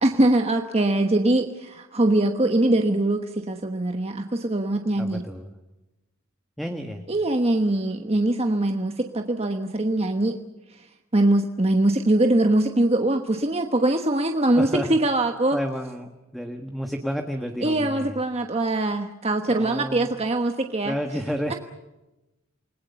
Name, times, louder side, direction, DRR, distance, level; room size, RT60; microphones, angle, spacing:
voice 1, 0.0-5.2 7.1-10.4 10.7-10.9 11.1-15.6 17.6-20.9 21.5-21.6, right 1 dB, 30° right, 5 dB, 1.2 m, -22 dB
voice 2, 5.0-5.5 6.6-7.0 14.5-15.0 15.5-18.2 19.5-20.1 20.8-21.5, equal, ahead, 4 dB, 1.5 m, -31 dB
28.5 x 20.0 x 7.0 m, 1.0 s
head